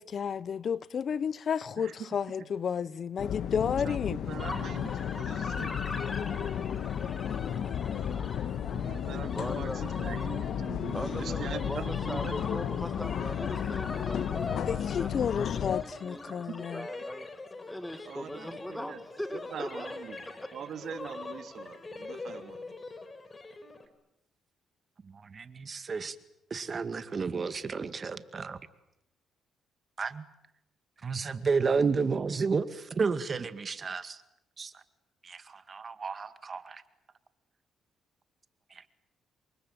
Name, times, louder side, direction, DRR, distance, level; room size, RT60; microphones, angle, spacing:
voice 1, 0.0-4.2 14.7-16.9, left 7 dB, 55° left, 1.0 m, -32 dB
voice 2, 1.8-2.5 3.7-6.1 8.7-12.5 16.3-16.6 18.1-19.0 19.3-22.7, right 8 dB, 65° right, 2.7 m, -43 dB
sound 1, 3.2-15.8, left 9 dB, 70° left, 1.6 m, -33 dB
sound 2, 4.4-23.8, left 3 dB, 25° left, 4.4 m, -43 dB
voice 3, 9.2-9.8 10.9-15.1 15.4-16.5 16.7-17.3 17.7-20.0 20.3-20.5, equal, 5° left, 2.0 m, -40 dB
voice 4, 25.0-26.2 26.5-28.6 30.0-30.2 31.0-34.2 34.6-34.7 35.2-36.8 38.7-38.9, right 5 dB, 40° right, 2.1 m, -31 dB
28.0 x 23.5 x 8.9 m
cardioid pair, 90°, 0 cm